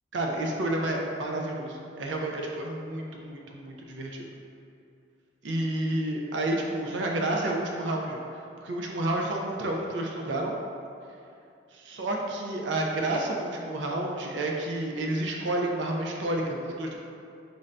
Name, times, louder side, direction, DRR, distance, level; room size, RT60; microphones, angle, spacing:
voice 1, 0.1-4.3 5.4-8.2 8.6-10.5 11.7-17.0, right 1 dB, 80° right, 0 dB, 0.5 m, -30 dB
5.3 x 2.6 x 3.3 m, 2.6 s
head